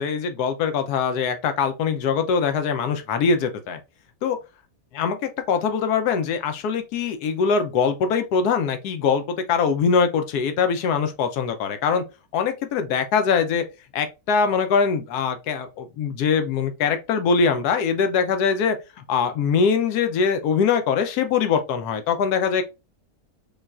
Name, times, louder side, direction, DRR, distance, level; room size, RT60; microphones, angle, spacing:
voice 1, 0.0-3.8 4.2-4.4 4.9-12.0 12.3-13.6 13.9-18.8 19.1-22.6, left 6 dB, 90° left, 1.2 m, -22 dB
5.3 x 2.4 x 2.4 m
omnidirectional pair, 1.6 m